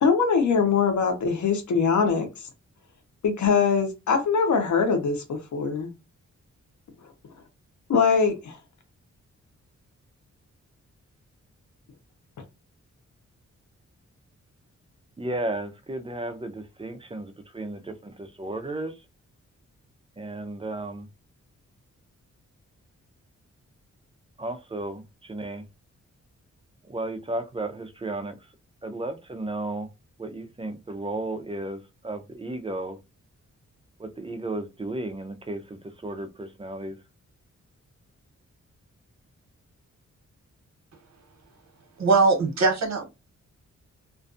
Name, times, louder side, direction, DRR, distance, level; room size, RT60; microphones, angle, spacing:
voice 1, 0.0-2.3 3.2-5.9 7.9-8.6, left 5 dB, 75° left, 0.7 m, -22 dB
voice 2, 15.2-18.9 20.2-21.1 24.4-25.6 26.8-28.4 28.8-29.9 30.2-33.0 34.0-37.0, right 2 dB, 20° right, 0.3 m, -34 dB
voice 3, 42.0-43.0, right 4 dB, 65° right, 0.9 m, -21 dB
2.4 x 2.3 x 2.4 m
wide cardioid pair, 115°, 29 cm